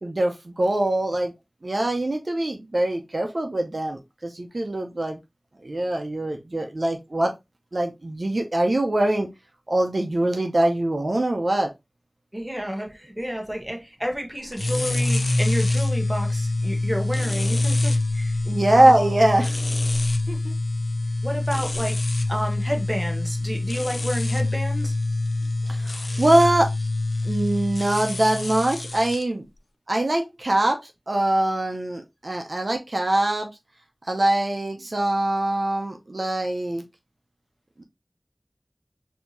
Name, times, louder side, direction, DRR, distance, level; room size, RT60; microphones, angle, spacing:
voice 1, 0.0-1.3 1.6-5.2 5.6-7.3 7.7-9.3 9.7-11.7 18.5-19.6 25.7-26.7 27.2-29.5 29.9-33.5 34.1-36.8 37.8-37.9, right 1 dB, 65° right, 0.6 m, -23 dB
voice 2, 12.3-18.4 18.8-19.1 20.3-20.5 21.2-22.0 22.3-24.9, equal, 10° right, 1.0 m, -30 dB
sound 1, 14.5-29.2, left 2 dB, 80° left, 0.4 m, -25 dB
4.4 x 2.8 x 2.6 m
wide cardioid pair, 50°, 0 cm